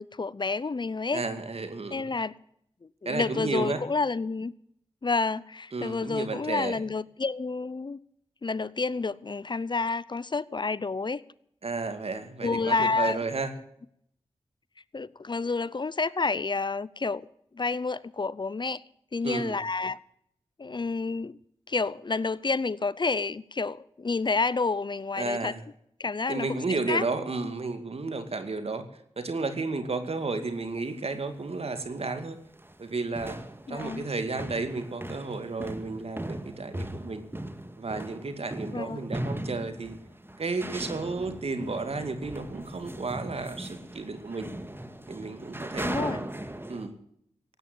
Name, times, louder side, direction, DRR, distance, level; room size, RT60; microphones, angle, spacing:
voice 1, 0.0-1.2 1.9-2.3 2.8-4.5 5.0-8.0 8.4-11.2 12.4-13.2 14.9-17.3 17.5-18.8 19.1-20.0 20.6-21.4 21.7-25.5 26.0-27.0 33.7-34.1 38.7-39.1 45.8-46.2, left 4 dB, 45° left, 0.6 m, -29 dB
voice 2, 1.1-2.1 3.1-3.8 5.7-6.8 11.6-13.5 19.2-19.6 25.2-25.6 26.3-28.9 29.2-32.4 32.8-33.4 33.7-37.2 37.8-40.0 40.4-44.5 45.1-46.3 46.7-46.9, right 3 dB, 65° right, 2.2 m, -32 dB
sound 1, 30.4-30.6 31.4-31.5 31.8-32.1 32.4-46.9, right 1 dB, 20° right, 1.9 m, -38 dB
17.0 x 9.2 x 7.9 m
cardioid pair, 40°, 11 cm